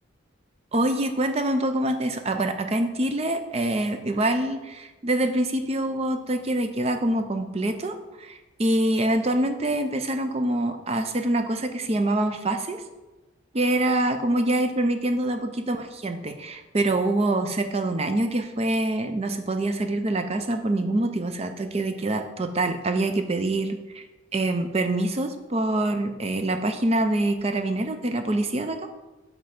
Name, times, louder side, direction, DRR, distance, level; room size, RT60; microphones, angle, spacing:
voice 1, 0.7-12.8 13.5-24.0 24.3-28.9, right 1 dB, 30° right, 7 dB, 0.5 m, -25 dB
5.3 x 4.5 x 5.8 m, 1.1 s
head